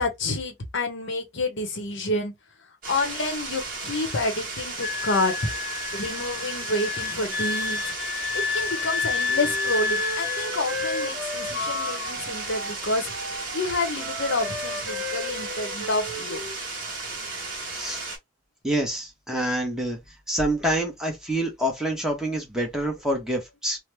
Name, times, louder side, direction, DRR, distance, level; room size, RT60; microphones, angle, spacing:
voice 1, 0.0-2.3 2.9-5.5 5.9-7.9 8.5-13.1 13.5-16.4, left 2 dB, 65° left, 0.8 m, -28 dB
sound 1, 2.8-18.2, right 3 dB, 45° right, 1.1 m, -34 dB
Wind instrument woodwind instrument, 4.8-11.2 11.5-12.1, left 5 dB, 45° left, 0.3 m, -30 dB
Wind instrument woodwind instrument 2, 9.3-12.8 13.0-16.6, equal, 65° right, 0.7 m, -35 dB
voice 2, 18.6-20.0 20.3-23.8, right 1 dB, 5° right, 0.9 m, -27 dB
3.0 x 2.0 x 3.2 m
head